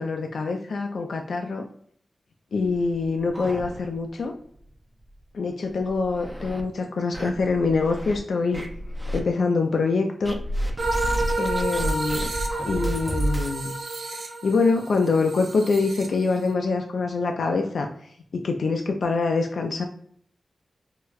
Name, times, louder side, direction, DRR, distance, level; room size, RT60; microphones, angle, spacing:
voice 1, 0.0-1.6 2.5-4.3 5.3-8.6 9.1-10.4 11.4-12.3 12.7-13.7 14.4-19.9, left 4 dB, 80° left, 4 dB, 0.3 m, -25 dB
sound 1, 2.6-4.2 4.5-4.6 5.0-5.1 5.7-6.6 7.1-8.2 8.5-9.2 10.2-13.6, equal, 10° right, 0.5 m, -31 dB
sound 2, 10.8-16.5, right 2 dB, 75° right, 0.6 m, -30 dB
4.7 x 2.1 x 2.3 m, 0.64 s
wide cardioid pair, 110°, 0 cm